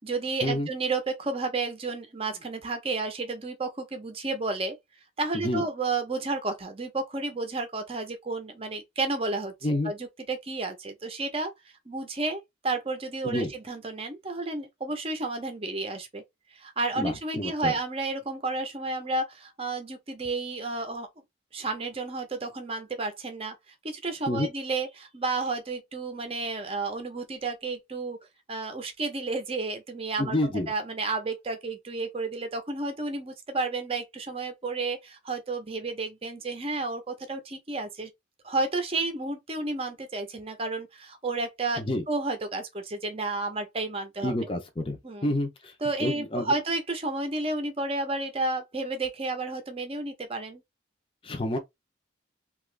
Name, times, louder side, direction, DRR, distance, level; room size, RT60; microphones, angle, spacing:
voice 1, 0.0-4.8 5.2-11.5 11.9-16.2 16.5-21.1 21.5-23.5 23.8-28.2 28.5-30.4 30.7-38.1 38.4-44.5 45.0-45.3 45.8-50.6, right 3 dB, 30° right, 0.6 m, -31 dB
voice 2, 5.3-5.6 9.6-9.9 13.2-13.5 17.0-17.7 24.3-24.5 30.2-30.7 41.8-42.0 44.2-45.7 46.0-46.5 51.2-51.6, left 1 dB, 25° left, 0.6 m, -29 dB
2.9 x 2.4 x 3.2 m
head